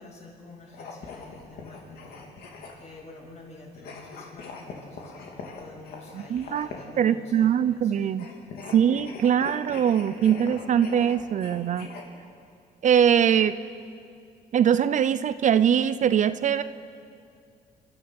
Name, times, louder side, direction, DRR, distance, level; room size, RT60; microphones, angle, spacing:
voice 1, 0.0-7.9 8.4-8.7, left 2 dB, 40° left, -2 dB, 7.4 m, -48 dB
sound 1, 0.7-3.0 3.7-7.0 8.1-12.0, left 4 dB, 65° left, 3.3 m, -42 dB
voice 2, 6.1-6.7 7.0-8.3 8.7-11.9 12.8-13.6 14.5-16.6, right 9 dB, 45° right, 13 dB, 0.7 m, -22 dB
29.0 x 13.0 x 7.8 m, 2.4 s
cardioid pair, 110°, 17 cm